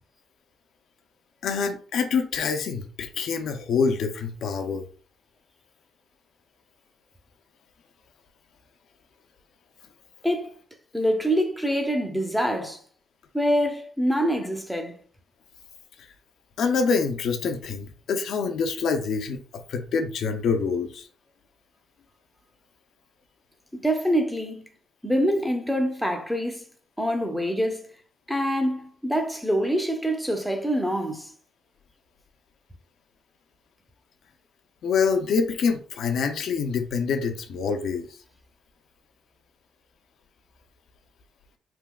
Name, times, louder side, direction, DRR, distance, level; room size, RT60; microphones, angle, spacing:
voice 1, 1.4-4.8 16.6-21.1 34.8-38.1, left 5 dB, 70° left, 0.4 m, -26 dB
voice 2, 10.9-12.8 13.3-15.0 23.7-24.6 25.0-26.7 27.0-27.8 28.3-31.3, equal, ahead, 0.6 m, -25 dB
3.4 x 2.8 x 2.3 m
cardioid pair, 90°, 0 cm